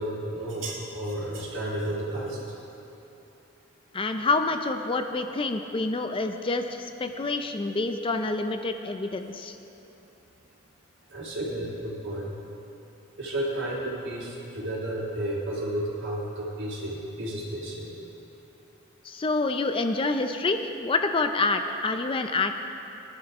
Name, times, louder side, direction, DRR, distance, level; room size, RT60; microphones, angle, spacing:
voice 1, 0.0-2.4 11.1-12.3 13.2-17.9, right 1 dB, 60° right, -5 dB, 3.1 m, -32 dB
voice 2, 3.9-9.6 19.0-22.5, left 3 dB, 25° left, 7 dB, 0.5 m, -27 dB
19.5 x 11.0 x 3.6 m, 3.0 s
head